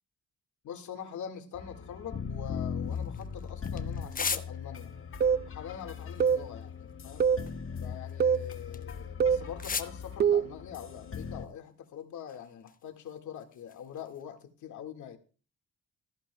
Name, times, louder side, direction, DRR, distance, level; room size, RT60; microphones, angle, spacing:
voice 1, 0.6-4.9 5.5-7.3 7.8-15.2, left 9 dB, 75° left, 6 dB, 1.9 m, -44 dB
sound 1, 1.5-11.4, left 6 dB, 45° left, 1.6 m, -39 dB
sound 2, 2.8-4.9 5.8-9.0 9.5-10.0 10.9-12.0 12.3-14.4, left 5 dB, 30° left, 0.9 m, -41 dB
sound 3, 5.2-5.5 6.2-6.5 7.2-7.5 8.2-8.5 9.2-9.5 10.2-10.5, right 7 dB, 35° right, 0.4 m, -24 dB
15.5 x 14.0 x 2.3 m, 0.36 s
cardioid pair, 90°, 30 cm